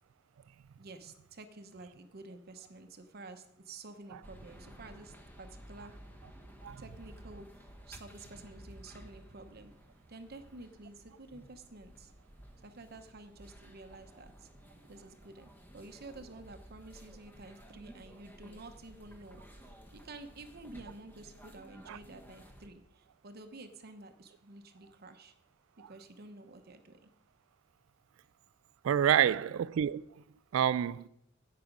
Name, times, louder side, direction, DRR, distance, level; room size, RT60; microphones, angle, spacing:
voice 1, 0.8-5.9 6.8-9.7 10.1-12.1 12.6-14.5 14.9-25.3 25.9-27.1 29.2-29.4, right 2 dB, 50° right, 0.9 m, -51 dB
sound 1, 4.2-22.7, equal, 10° left, 1.2 m, -54 dB
voice 2, 28.8-30.0 30.5-31.1, right 9 dB, 90° right, 0.3 m, -28 dB
10.5 x 8.5 x 5.2 m
head